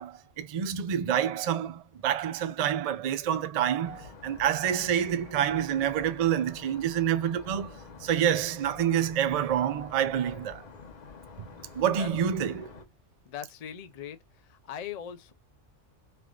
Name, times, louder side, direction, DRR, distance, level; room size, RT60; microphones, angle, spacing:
voice 1, 0.0-10.7 11.4-11.5 11.7-12.8, right 9 dB, 65° right, 0.3 m, -28 dB
sound 1, 3.8-12.8, left 5 dB, 40° left, 0.7 m, -48 dB
voice 2, 13.3-14.2 14.4-15.3, left 9 dB, 65° left, 0.4 m, -40 dB
3.3 x 3.3 x 3.7 m
omnidirectional pair, 1.3 m